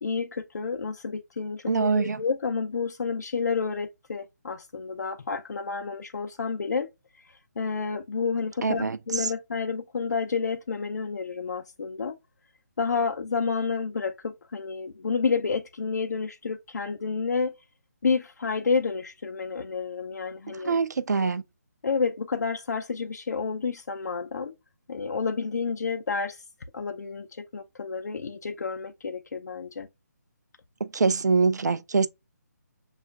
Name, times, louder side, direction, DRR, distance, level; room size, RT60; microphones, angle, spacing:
voice 1, 0.0-6.9 7.6-12.1 12.8-17.5 18.0-20.8 21.8-24.5 24.9-26.4 26.7-27.3 27.5-29.9, left 5 dB, 70° left, 0.5 m, -30 dB
voice 2, 1.7-2.2 8.6-9.3 20.6-21.4 30.8-32.1, right 4 dB, 70° right, 0.4 m, -24 dB
5.5 x 2.4 x 2.3 m
figure-of-eight pair, 155°, 9 cm